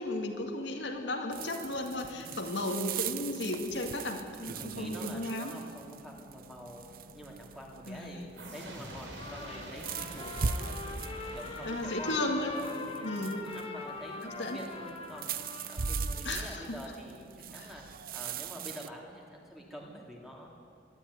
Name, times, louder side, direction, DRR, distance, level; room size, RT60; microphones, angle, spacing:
voice 1, 0.0-5.5 7.9-8.3 11.6-12.6 13.0-13.4 14.2-14.6 16.2-16.8 17.5-17.7, left 2 dB, 75° left, 3 dB, 2.2 m, -35 dB
sound 1, 1.3-18.9, right 5 dB, 50° right, 0.6 m, -41 dB
voice 2, 4.5-6.8 7.1-8.2 8.5-11.0 11.3-12.3 12.5-20.5, equal, ahead, -2 dB, 3.1 m, -47 dB
sound 2, 8.4-13.0, right 1 dB, 85° right, 3.9 m, -47 dB
Trumpet, 9.2-16.3, left 3 dB, 30° left, 3.2 m, -42 dB
22.0 x 13.0 x 9.8 m, 2.3 s
head